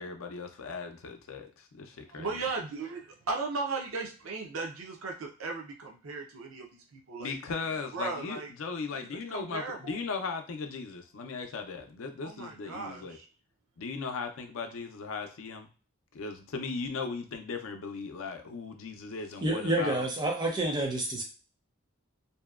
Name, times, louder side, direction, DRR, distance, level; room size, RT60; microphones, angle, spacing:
voice 1, 0.0-1.9 2.1-2.4 7.2-13.2 13.8-15.7 16.1-20.1, left 4 dB, 80° left, 5 dB, 0.5 m, -37 dB
voice 2, 2.1-7.4 7.9-8.5 8.9-10.0 12.2-13.3, right 3 dB, 90° right, 1 dB, 0.6 m, -37 dB
voice 3, 19.4-21.2, right 1 dB, 20° right, 1 dB, 0.5 m, -29 dB
2.7 x 2.1 x 2.3 m, 0.35 s
head